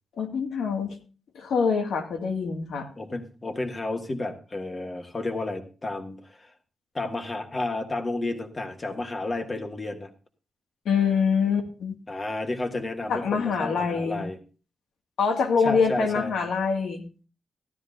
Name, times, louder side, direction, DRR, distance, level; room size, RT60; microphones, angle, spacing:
voice 1, 0.2-1.0 1.3-2.9 10.9-12.0 13.1-14.2 15.2-17.0, left 5 dB, 85° left, 4 dB, 2.0 m, -25 dB
voice 2, 3.0-6.5 6.9-10.1 12.1-14.4 15.6-16.3, left 2 dB, 25° left, 5 dB, 1.6 m, -31 dB
15.5 x 12.5 x 2.6 m, 0.36 s
wide cardioid pair, 150°, 0 cm